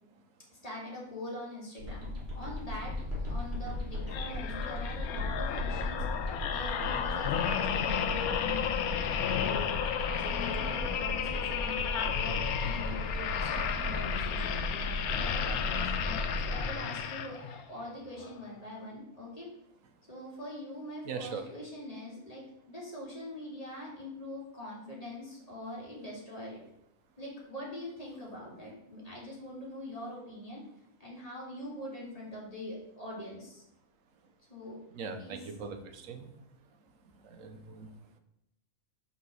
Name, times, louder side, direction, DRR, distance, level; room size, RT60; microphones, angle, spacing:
voice 1, 0.6-2.1 2.3-2.9 3.3-6.0 6.5-8.8 9.3-9.4 9.8-16.0 16.4-19.5 20.1-22.4 22.7-26.6 27.2-30.6 31.0-33.6 34.5-34.8 35.2-35.4, left 1 dB, 25° left, -4 dB, 2.3 m, -43 dB
sound 1, 1.8-16.6, left 2 dB, 45° right, 2.3 m, -36 dB
sound 2, 4.1-17.6 18.2-18.4, left 8 dB, 85° left, 1.1 m, -33 dB
voice 2, 21.0-21.4 34.9-36.3 37.2-37.9, right 5 dB, 70° right, 7 dB, 1.2 m, -40 dB
5.7 x 4.1 x 6.2 m, 0.79 s
omnidirectional pair, 1.5 m